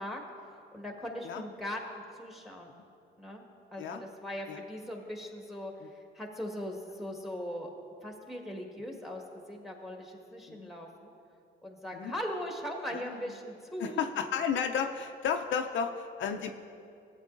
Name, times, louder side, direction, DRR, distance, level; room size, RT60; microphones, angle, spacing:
voice 1, 0.0-2.8 3.2-3.4 3.7-7.7 8.0-11.1 11.6-14.0, equal, ahead, 1 dB, 1.4 m, -40 dB
voice 2, 13.8-16.5, left 7 dB, 70° left, 5 dB, 0.5 m, -33 dB
14.5 x 8.2 x 2.5 m, 2.5 s
cardioid pair, 90°, 20 cm